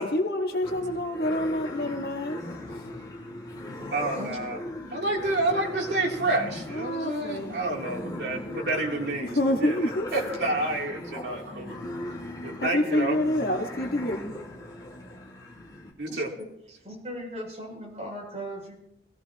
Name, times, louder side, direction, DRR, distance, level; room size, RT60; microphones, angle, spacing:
voice 1, 0.0-2.4 2.7-2.9 6.7-7.6 9.2-10.1 11.7-11.8 12.6-14.3, left 1 dB, 55° left, 2 dB, 1.9 m, -27 dB
sound 1, 0.6-15.9, left 1 dB, 25° left, 2.9 m, -39 dB
voice 2, 3.9-11.8 12.4-13.2 16.0-16.3, right 2 dB, 80° right, -1 dB, 3.4 m, -29 dB
voice 3, 16.8-18.8, equal, 35° right, -2 dB, 7.8 m, -38 dB
22.5 x 17.5 x 3.1 m, 0.82 s
head